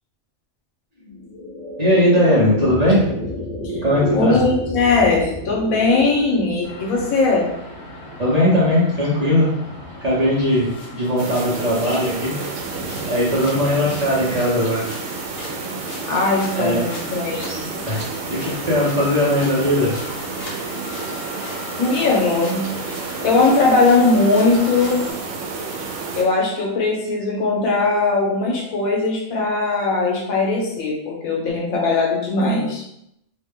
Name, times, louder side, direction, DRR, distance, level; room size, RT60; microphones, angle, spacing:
sound 1, 1.0-11.5, left 1 dB, 45° left, 0.7 m, -32 dB
voice 1, 1.8-3.1 3.8-4.4 8.2-9.5 10.0-12.4 13.1-14.9 16.5-16.8 17.8-18.0 18.3-19.9, left 1 dB, 40° right, -7 dB, 0.7 m, -19 dB
voice 2, 4.1-7.5 16.1-17.6 21.8-22.7 23.2-25.0 26.1-32.8, left 3 dB, 90° left, -2 dB, 1.3 m, -19 dB
sound 2, 6.6-25.1, left 1 dB, 60° left, 1.1 m, -37 dB
sound 3, 11.2-26.2, right 4 dB, 80° right, 1.0 m, -30 dB
3.0 x 2.1 x 3.5 m, 0.79 s
omnidirectional pair, 1.4 m